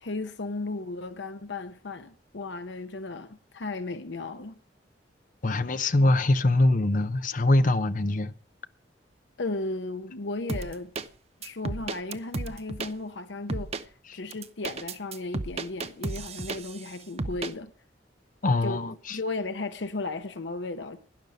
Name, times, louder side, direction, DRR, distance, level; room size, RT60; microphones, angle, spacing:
voice 1, 0.0-4.6 9.4-10.9 11.4-17.7 18.6-21.0, left 2 dB, 75° left, 0.9 m, -35 dB
voice 2, 5.4-8.3 14.1-14.2 18.4-19.2, left 2 dB, 45° left, 0.7 m, -23 dB
sound 1, 10.5-11.1 11.4-12.9 13.5-13.8 14.3-16.9 17.2-17.5, right 3 dB, 35° right, 0.7 m, -33 dB
12.0 x 11.0 x 5.2 m
head